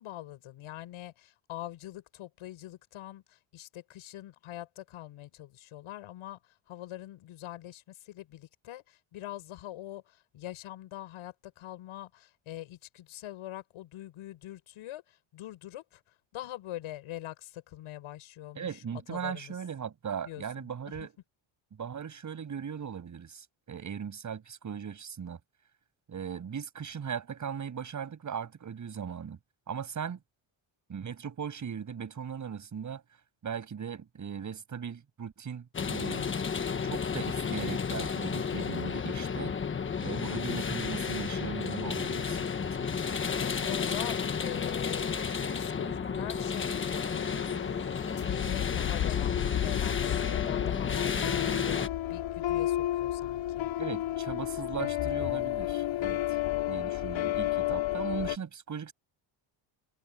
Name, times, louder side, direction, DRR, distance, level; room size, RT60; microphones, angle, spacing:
voice 1, 0.0-6.4 6.7-16.0 16.3-18.7 19.1-19.5 20.3-20.7 43.6-47.7 48.2-53.7, left 14 dB, 85° left, 7.2 m, -43 dB
voice 2, 18.6-21.1 21.7-25.4 26.1-29.4 29.7-30.2 30.9-33.0 33.4-36.3 36.8-39.5 40.0-43.0 53.8-56.2 56.7-58.9, right 7 dB, 35° right, 7.8 m, -38 dB
sound 1, 35.7-51.9, left 6 dB, 25° left, 1.2 m, -32 dB
sound 2, 45.8-58.4, left 13 dB, 65° left, 4.0 m, -32 dB
cardioid pair, 160°, 49 cm